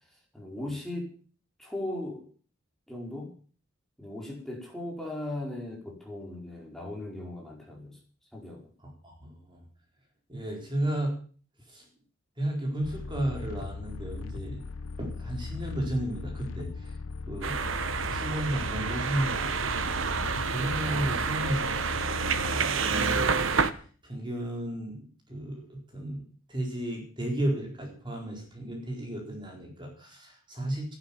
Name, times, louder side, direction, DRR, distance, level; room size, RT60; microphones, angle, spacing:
voice 1, 0.3-1.1 1.6-2.2 2.9-3.3 4.0-8.0 8.3-8.6, left 1 dB, ahead, -2 dB, 4.8 m, -37 dB
voice 2, 8.8-9.6 10.3-11.1 11.7-11.8 12.4-14.6 15.0-17.0 17.3-19.8 20.3-23.4 24.0-30.9, right 1 dB, 25° right, 1 dB, 4.4 m, -34 dB
sound 1, 12.8-22.7, left 3 dB, 75° left, 0.7 m, -38 dB
sound 2, 17.4-23.7, right 5 dB, 70° right, 1.2 m, -29 dB
14.5 x 11.5 x 7.3 m, 0.42 s
head